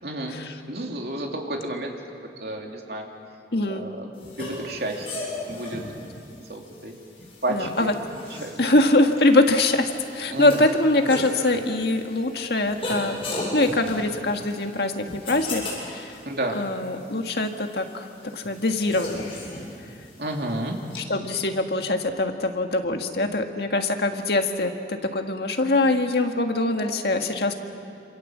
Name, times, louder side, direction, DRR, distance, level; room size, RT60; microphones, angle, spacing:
voice 1, 0.0-0.4 0.7-1.9 2.4-3.1 3.7-4.1 4.4-5.8 6.5-6.9 7.4-7.9 8.3-8.5 10.3-10.7 16.2-16.6 20.2-20.8, right 1 dB, 65° right, 1 dB, 3.1 m, -31 dB
voice 2, 3.5-3.9 7.5-7.9 8.6-13.2 13.5-16.1 16.5-18.1 18.3-19.3 21.0-27.5, left 2 dB, 65° left, 5 dB, 1.8 m, -23 dB
sound 1, 4.2-21.0, left 2 dB, 35° left, 7.5 m, -37 dB
27.5 x 27.0 x 7.5 m, 2.4 s
head